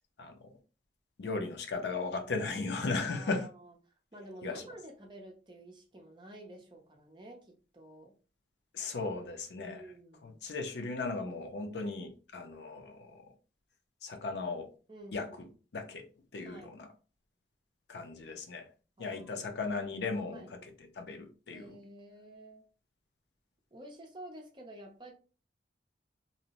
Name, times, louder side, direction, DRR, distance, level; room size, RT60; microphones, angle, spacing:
voice 1, 1.2-3.5 4.4-4.6 8.7-9.8 10.2-13.2 14.0-14.7 15.1-15.3 15.7-16.0 16.3-16.9 17.9-18.7 19.0-20.7 21.0-21.8, left 3 dB, 80° left, 0.5 m, -36 dB
voice 2, 3.0-8.2 9.6-10.5 14.9-15.5 16.4-16.7 19.0-19.4 20.3-20.5 21.5-22.7 23.7-25.1, right 1 dB, 25° right, 0.5 m, -50 dB
2.6 x 2.0 x 2.8 m
head